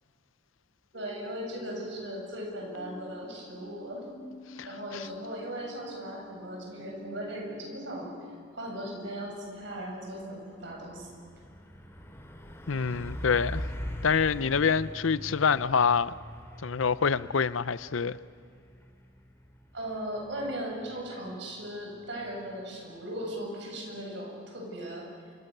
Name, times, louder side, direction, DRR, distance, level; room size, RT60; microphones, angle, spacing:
sound 1, 0.9-8.5, equal, 35° left, 7.8 m, -48 dB
voice 1, 0.9-4.0 4.6-8.1 8.5-11.1 19.7-25.3, equal, 65° right, 7.6 m, -38 dB
Truck, 9.5-9.7 10.0-22.6, equal, 15° left, 2.9 m, -43 dB
voice 2, 12.7-13.6 14.0-16.1 16.6-18.2, left 6 dB, 85° left, 0.6 m, -26 dB
28.0 x 26.0 x 6.8 m
head